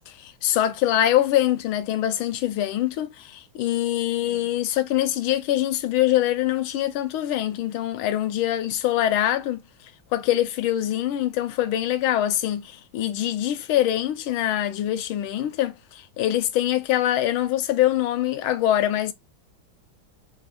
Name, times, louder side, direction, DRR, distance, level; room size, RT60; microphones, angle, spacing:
voice 1, 0.0-9.6 10.1-19.1, left 12 dB, 85° left, 1.5 m, -24 dB
4.8 x 2.3 x 4.1 m
omnidirectional pair, 2.2 m